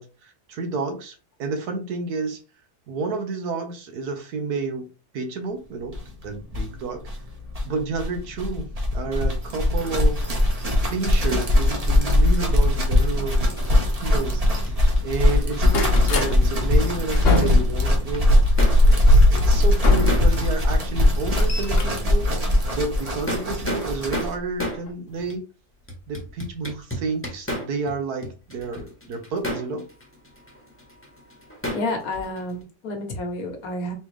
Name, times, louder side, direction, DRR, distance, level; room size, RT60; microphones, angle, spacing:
voice 1, 0.0-2.4 2.9-7.0 7.6-10.3 10.9-18.3 18.9-22.3 22.7-25.5 26.1-29.9, right 4 dB, 70° right, 5 dB, 1.4 m, -30 dB
sound 1, 5.9-6.0 6.2-6.3 6.5-24.3, left 1 dB, 30° right, 1.0 m, -21 dB
sound 2, 12.0-14.8 15.1-16.3 16.8-20.6 21.0-23.2 24.2-24.4 24.9-25.0 25.2-25.3, left 1 dB, 45° left, 1.0 m, -21 dB
sound 3, 14.5-17.3 17.6-18.8 19.1-20.7 21.0-21.1 21.4-22.0 22.3-22.4 23.0-24.8 25.3-25.4 25.9-27.9 28.2-32.6, left 1 dB, 10° left, 1.0 m, -33 dB
voice 2, 31.7-33.9, left 2 dB, 65° left, 4 dB, 1.4 m, -30 dB
4.1 x 3.6 x 3.3 m, 0.34 s
omnidirectional pair, 1.7 m